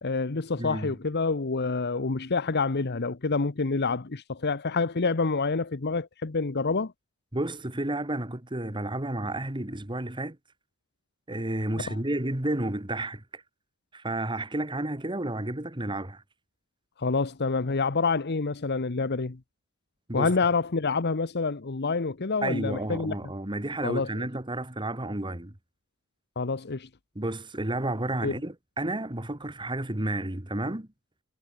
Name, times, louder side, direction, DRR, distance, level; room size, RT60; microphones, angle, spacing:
voice 1, 0.0-6.9 11.8-12.0 17.0-19.4 20.1-23.1 23.8-24.3 26.4-26.9 28.2-28.4, left 4 dB, 50° left, 0.9 m, -27 dB
voice 2, 0.6-0.9 7.3-10.4 11.3-13.4 13.9-16.2 20.1-20.3 22.4-25.5 27.2-30.9, right 1 dB, 20° right, 1.8 m, -31 dB
head